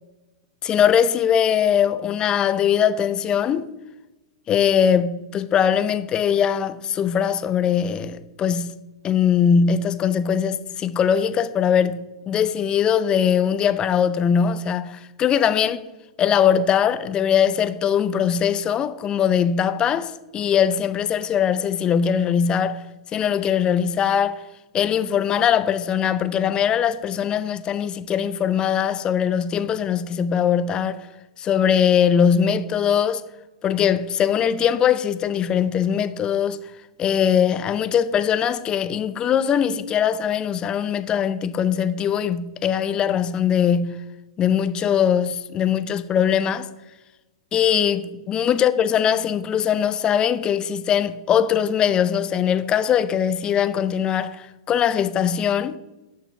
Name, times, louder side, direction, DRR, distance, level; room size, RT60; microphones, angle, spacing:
voice 1, 0.6-3.7 4.5-12.0 12.3-15.8 16.2-22.8 23.1-24.4 24.7-31.0 31.4-33.2 33.6-36.6 37.0-44.0 44.4-46.7 47.5-55.8, left 8 dB, 25° left, 0.5 m, -21 dB
6.7 x 6.5 x 5.8 m
hypercardioid pair, 115°, 3 cm